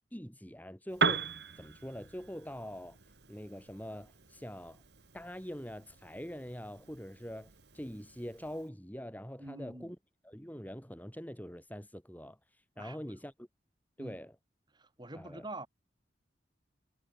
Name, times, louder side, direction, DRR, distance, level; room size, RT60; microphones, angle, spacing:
voice 1, 0.1-1.3 1.6-3.0 3.3-4.8 5.1-7.5 7.7-10.0 10.2-13.5 14.0-14.3 15.1-15.5, equal, 10° left, 4.9 m, -44 dB
Piano, 0.9-8.7, right 4 dB, 65° right, 2.4 m, -39 dB
voice 2, 9.4-9.9 12.8-13.1 14.0-14.2 14.7-15.7, right 1 dB, 25° right, 2.9 m, -45 dB
head